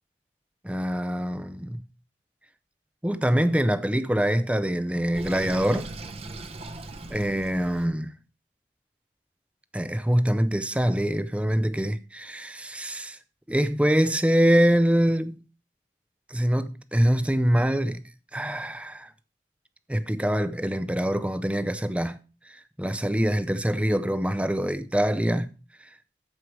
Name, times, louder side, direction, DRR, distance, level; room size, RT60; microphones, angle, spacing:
voice 1, 0.6-1.8 3.0-5.9 7.1-8.1 9.7-13.2 13.5-15.4 16.3-18.0 18.3-19.1 19.9-22.2 22.8-25.5, equal, 5° right, 0.5 m, -24 dB
Sink (filling or washing), 5.1-7.9, right 2 dB, 35° right, 0.8 m, -38 dB
14.0 x 4.8 x 4.7 m
head